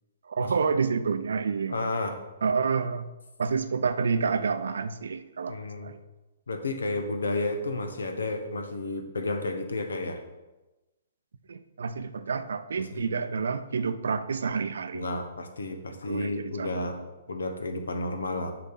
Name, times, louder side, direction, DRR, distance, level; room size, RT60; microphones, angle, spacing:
voice 1, 0.2-1.9 2.4-3.1 3.4-5.6 5.8-6.0 11.5-15.1 16.1-17.0, right 5 dB, 65° right, 11 dB, 0.6 m, -29 dB
voice 2, 1.7-2.2 5.5-5.9 6.5-10.2 12.9-13.1 14.9-17.0 17.3-18.5, left 2 dB, 75° left, 6 dB, 1.2 m, -31 dB
6.5 x 5.1 x 5.9 m, 1.1 s
figure-of-eight pair, 125°, 0 cm